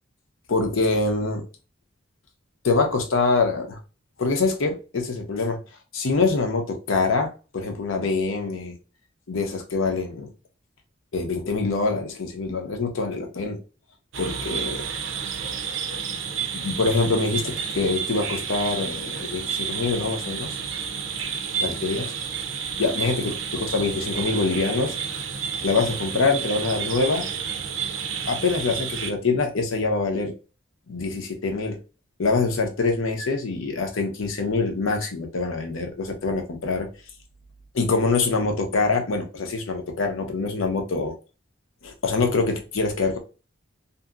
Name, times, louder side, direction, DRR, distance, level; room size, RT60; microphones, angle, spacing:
voice 1, 0.5-1.4 2.6-3.8 4.2-5.6 5.9-8.8 9.3-10.3 11.1-13.6 14.2-14.9 16.5-20.6 21.6-22.1 22.8-25.0 25.6-27.3 28.3-30.3 30.9-31.8 32.2-36.9 37.7-41.1 41.8-43.2, left 3 dB, 90° left, 0.7 m, -25 dB
sound 1, 14.1-29.1, right 7 dB, 80° right, 0.5 m, -30 dB
2.8 x 2.6 x 2.4 m
head